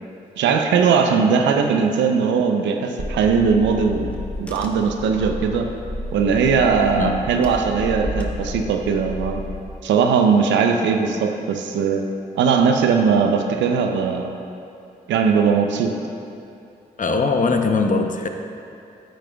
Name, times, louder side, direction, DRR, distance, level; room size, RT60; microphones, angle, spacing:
voice 1, 0.4-4.1 4.4-5.7 6.1-9.4 9.8-12.0 12.4-14.3 15.1-15.9, right 6 dB, 85° right, 5 dB, 0.6 m, -19 dB
Car / Engine, 3.0-9.6, left 1 dB, 5° left, 1.1 m, -31 dB
voice 2, 17.0-18.3, left 4 dB, 45° left, 5 dB, 0.7 m, -20 dB
9.1 x 8.9 x 2.3 m, 2.7 s
supercardioid pair, 40°, 19 cm